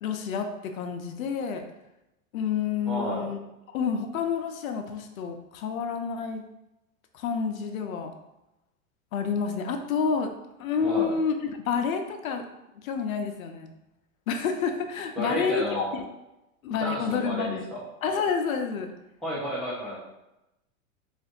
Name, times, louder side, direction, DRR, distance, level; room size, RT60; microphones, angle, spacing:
voice 1, 0.0-1.7 2.3-3.4 3.7-6.4 7.1-8.1 9.1-10.3 10.6-12.4 12.8-13.7 14.3-16.0 16.6-17.7 18.0-18.9, left 6 dB, 75° left, 6 dB, 0.7 m, -29 dB
voice 2, 2.9-3.3 10.8-11.1 15.2-15.9 16.7-17.8 19.2-20.0, equal, ahead, -8 dB, 1.0 m, -32 dB
3.4 x 2.5 x 3.9 m, 0.94 s
hypercardioid pair, 120°, 41 cm